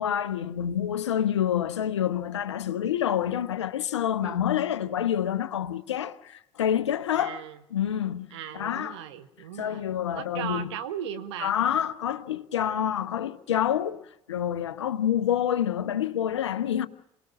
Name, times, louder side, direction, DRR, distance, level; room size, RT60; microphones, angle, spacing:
voice 1, 0.0-7.4 7.7-9.0 9.6-10.7 11.4-16.9, left 10 dB, 90° left, 1.0 m, -27 dB
voice 2, 4.2-4.5 7.1-7.6 8.3-11.5, right 9 dB, 80° right, 1.6 m, -37 dB
28.0 x 19.0 x 7.5 m
hypercardioid pair, 55°, 15 cm